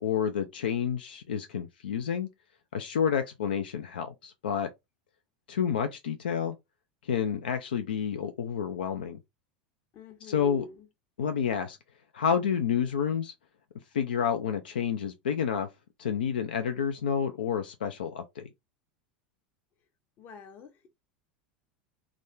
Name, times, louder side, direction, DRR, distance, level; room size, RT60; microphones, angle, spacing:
voice 1, 0.0-2.3 2.7-4.7 5.5-6.6 7.0-9.2 10.2-10.7 11.2-11.8 12.1-13.3 13.9-15.7 16.0-18.5, left 7 dB, 75° left, 0.4 m, -29 dB
voice 2, 9.9-10.9 20.2-20.9, left 3 dB, 45° left, 0.8 m, -47 dB
2.4 x 2.2 x 3.4 m
hypercardioid pair, 85°, 5 cm